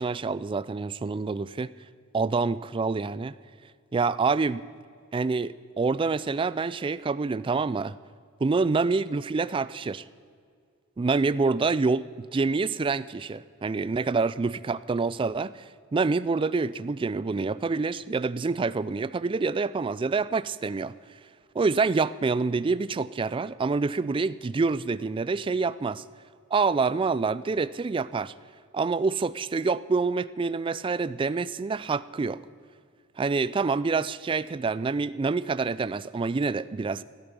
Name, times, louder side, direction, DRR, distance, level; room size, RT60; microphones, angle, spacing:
voice 1, 0.0-1.7 2.1-3.4 3.9-4.6 5.1-7.9 8.4-10.0 11.0-20.9 21.5-26.0 26.5-28.3 28.7-32.4 33.2-37.0, right 4 dB, 25° right, 17 dB, 0.3 m, -27 dB
17.0 x 12.0 x 5.3 m, 2.1 s
head